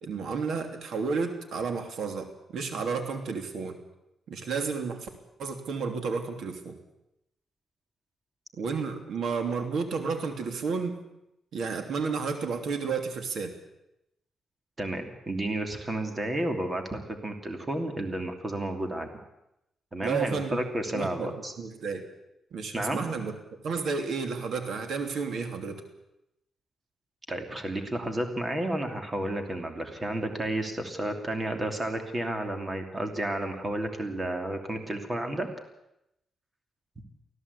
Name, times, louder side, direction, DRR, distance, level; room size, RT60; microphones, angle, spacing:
voice 1, 0.0-3.8 4.3-5.1 5.4-6.8 8.6-10.9 11.5-13.5 20.0-20.6 20.9-22.0 22.5-23.3 23.6-25.8, right 5 dB, 75° right, 6 dB, 3.0 m, -31 dB
voice 2, 14.8-19.1 19.9-21.5 22.7-23.0 27.3-35.5, right 1 dB, 20° right, 5 dB, 2.8 m, -31 dB
24.5 x 16.5 x 8.4 m, 0.85 s
cardioid pair, 130°, 0 cm